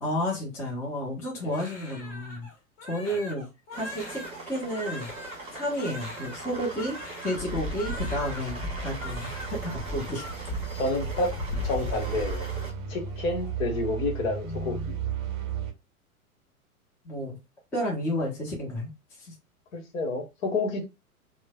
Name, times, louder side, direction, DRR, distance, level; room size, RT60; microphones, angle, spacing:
voice 1, 0.0-2.5 2.9-3.5 3.8-4.2 4.5-5.1 5.5-7.0 7.2-10.2 14.4-14.9 17.0-17.4 17.7-18.9 19.2-19.3, equal, 5° left, 0.4 m, -31 dB
Crying sobbing, 1.5-8.5 8.8-9.6 9.8-10.4 10.8-12.2 12.5-12.7 13.0-13.5, left 2 dB, 40° left, 1.2 m, -43 dB
sound 1, 3.7-12.7, left 1 dB, 15° right, 1.2 m, -37 dB
sound 2, 6.2-15.7, right 8 dB, 35° right, 0.6 m, -36 dB
voice 2, 10.7-11.3 11.6-12.5 12.9-14.8 19.7-20.8, left 2 dB, 60° left, 1.0 m, -29 dB
3.0 x 2.0 x 2.2 m
figure-of-eight pair, 100°, 44 cm